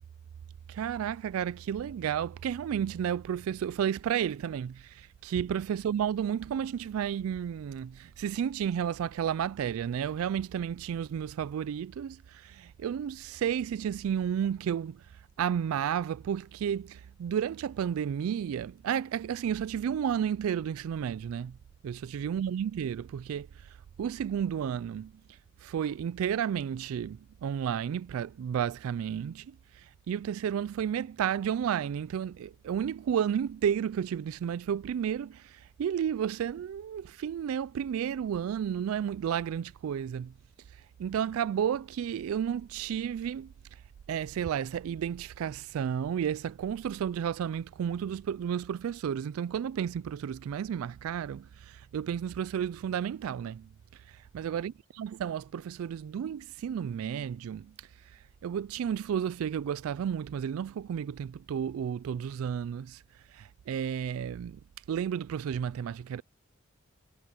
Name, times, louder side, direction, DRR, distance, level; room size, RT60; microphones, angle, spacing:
voice 1, 0.7-15.0 15.4-21.5 21.8-23.5 24.0-25.1 25.6-29.5 30.1-40.3 41.0-43.5 44.1-53.7 54.3-54.7 55.0-57.7 58.4-63.0 63.3-64.6 64.9-66.2, right 8 dB, 80° right, 0.3 m, -32 dB
head